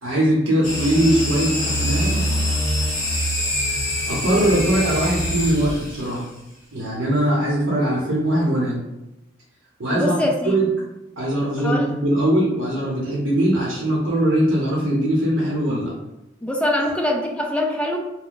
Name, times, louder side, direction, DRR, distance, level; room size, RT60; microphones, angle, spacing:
voice 1, 0.0-2.3 4.1-6.2 6.7-8.8 9.8-10.2 10.4-10.6 11.2-15.9, right 1 dB, 75° right, -5 dB, 0.8 m, -21 dB
sound 1, 0.6-6.1, left 1 dB, 40° left, 1.1 m, -24 dB
voice 2, 9.9-10.6 11.6-11.9 16.4-18.0, left 1 dB, 5° left, 0 dB, 0.3 m, -23 dB
2.5 x 2.1 x 3.6 m, 0.95 s
head